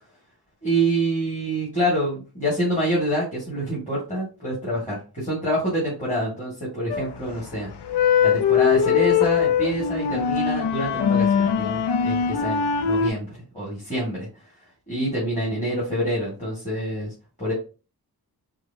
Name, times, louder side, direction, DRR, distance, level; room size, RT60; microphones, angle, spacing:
voice 1, 0.6-7.7 8.2-14.3 14.9-17.1 17.4-17.5, right 1 dB, 20° left, -6 dB, 1.7 m, -26 dB
sound 1, 6.9-7.3 7.8-13.1, left 7 dB, 80° left, 0.5 m, -21 dB
4.7 x 2.2 x 2.5 m, 0.34 s
wide cardioid pair, 95°, 40 cm